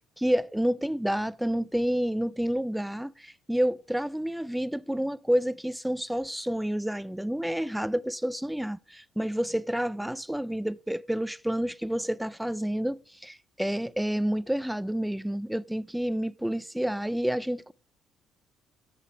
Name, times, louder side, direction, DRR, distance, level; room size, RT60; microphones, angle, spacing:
voice 1, 0.2-17.7, equal, 5° right, 0.3 m, -29 dB
7.5 x 6.7 x 4.6 m
cardioid pair, 100°, 0 cm